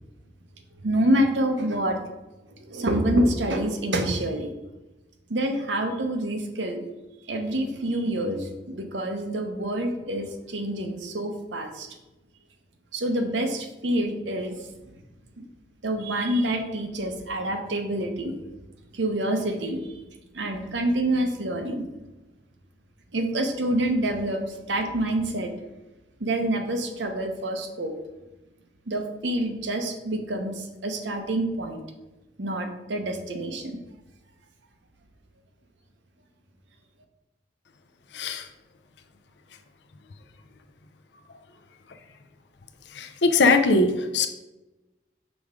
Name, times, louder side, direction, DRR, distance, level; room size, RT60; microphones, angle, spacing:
voice 1, 0.8-2.0 2.6-4.5 5.3-6.8 7.3-11.9 12.9-14.6 15.4-15.5 15.8-18.4 18.9-19.8 20.3-21.8 23.1-25.5 26.2-27.9 28.9-31.8 32.4-33.8, right 1 dB, 90° right, 5 dB, 0.9 m, -27 dB
voice 2, 38.1-38.5 42.9-44.3, left 3 dB, 75° left, 7 dB, 0.5 m, -21 dB
6.2 x 3.5 x 4.9 m, 1.1 s
head